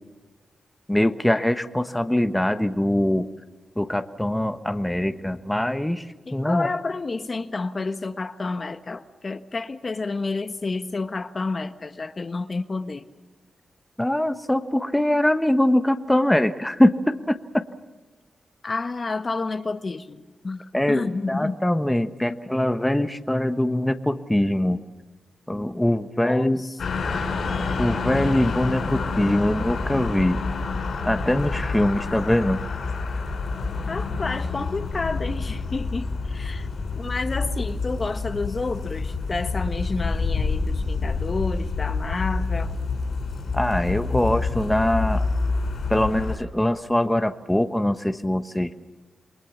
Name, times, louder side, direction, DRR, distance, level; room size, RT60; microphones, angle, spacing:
voice 1, 0.9-3.3 3.8-6.0 6.3-6.7 14.0-17.4 20.7-24.8 25.5-26.6 27.8-30.4 31.1-32.6 43.5-45.2 45.9-48.7, left 1 dB, 10° left, 9 dB, 1.3 m, -22 dB
voice 2, 6.3-13.0 18.6-21.6 26.2-26.8 33.9-36.7 36.9-42.8, left 3 dB, 45° left, 9 dB, 1.3 m, -30 dB
sound 1, 26.8-46.4, left 4 dB, 75° left, 6.1 m, -28 dB
28.0 x 20.5 x 7.2 m, 1.2 s
cardioid pair, 60°, 0 cm